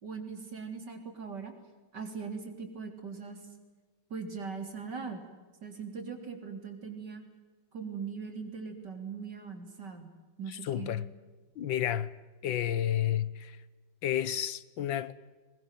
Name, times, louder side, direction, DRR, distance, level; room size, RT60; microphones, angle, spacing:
voice 1, 0.0-1.5 1.9-3.4 4.1-5.3 5.6-7.2 7.7-11.0, right 5 dB, 65° right, 4.2 m, -40 dB
voice 2, 10.6-11.1 11.6-12.1 12.4-13.6 14.0-15.1, left 11 dB, 85° left, 1.8 m, -31 dB
22.5 x 21.5 x 9.3 m
omnidirectional pair, 2.0 m